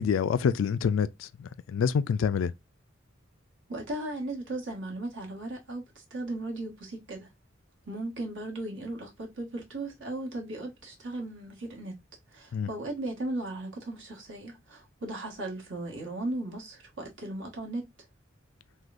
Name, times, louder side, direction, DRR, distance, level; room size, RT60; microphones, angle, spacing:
voice 1, 0.0-2.5 12.5-12.7, left 6 dB, 80° left, 0.3 m, -27 dB
voice 2, 3.7-7.3 7.8-12.0 12.3-17.8, right 2 dB, 70° right, 1.6 m, -36 dB
6.1 x 2.3 x 2.5 m
head